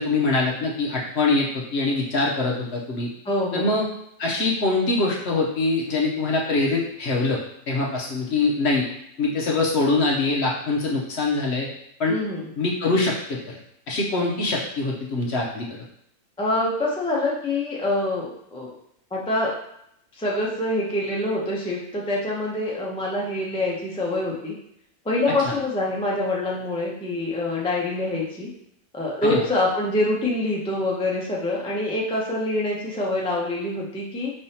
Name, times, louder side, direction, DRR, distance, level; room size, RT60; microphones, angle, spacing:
voice 1, 0.0-3.1 3.5-3.9 4.2-7.4 7.7-8.9 9.2-11.7 12.0-12.2 12.6-13.6 13.9-15.7 29.2-29.4, left 3 dB, 55° left, -2 dB, 0.9 m, -23 dB
voice 2, 3.2-3.7 12.1-12.5 16.4-18.7 19.1-19.5 20.2-24.6 25.0-28.5 28.9-34.3, left 2 dB, 5° left, -3 dB, 0.4 m, -25 dB
5.3 x 3.4 x 2.8 m, 0.75 s
omnidirectional pair, 1.5 m